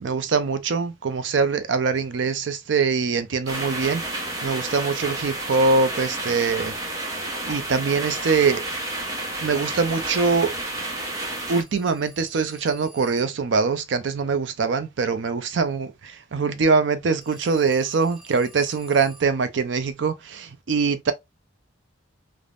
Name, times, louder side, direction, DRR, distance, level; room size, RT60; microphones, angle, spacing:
voice 1, 0.0-6.7 7.5-8.6 9.4-10.5 11.5-21.1, right 4 dB, 75° right, 0.5 m, -23 dB
sound 1, 3.5-11.6, right 1 dB, 20° right, 0.7 m, -30 dB
Telephone, 11.2-13.5 17.2-19.4, right 2 dB, ahead, 1.2 m, -50 dB
3.3 x 2.0 x 2.4 m
head